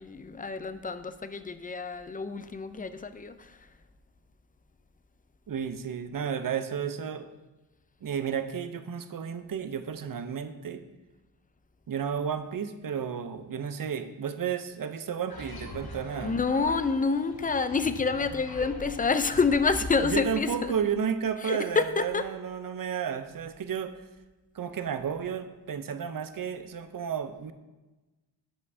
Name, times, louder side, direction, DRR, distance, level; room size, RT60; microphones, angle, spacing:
voice 1, 0.0-3.7 16.2-20.8 21.4-22.3, left 4 dB, 20° left, 11 dB, 0.4 m, -28 dB
voice 2, 5.5-7.3 8.0-10.8 11.9-16.3 20.0-23.9 24.5-27.5, right 7 dB, 50° right, 9 dB, 0.6 m, -32 dB
sound 1, 15.3-20.4, left 1 dB, 55° left, 1.3 m, -42 dB
8.9 x 5.2 x 2.7 m, 1.1 s
cardioid pair, 45°, 43 cm